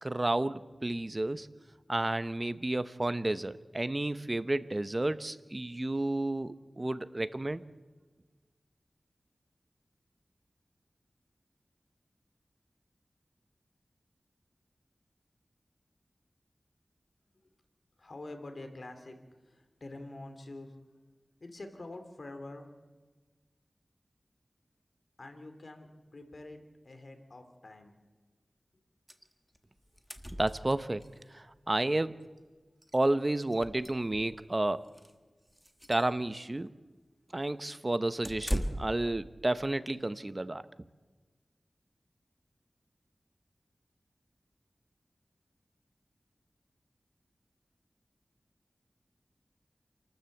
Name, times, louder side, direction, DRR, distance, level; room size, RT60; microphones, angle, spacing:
voice 1, 0.0-1.5 1.9-7.6 30.3-31.1 31.3-32.2 32.9-34.8 35.9-36.7 37.3-40.6, right 2 dB, 30° right, 14 dB, 0.8 m, -31 dB
voice 2, 18.0-19.2 19.4-20.7 21.4-22.7 25.2-27.9, left 2 dB, 60° left, 6 dB, 2.9 m, -46 dB
sound 1, 29.1-29.3 29.5-29.6 29.8-31.1 32.4-32.5 32.8-32.9 33.4-34.4 34.9-35.1 35.6-36.1 38.2-39.1, equal, ahead, 1.6 m, -38 dB
27.5 x 13.0 x 7.9 m, 1.3 s
wide cardioid pair, 65°, 0 cm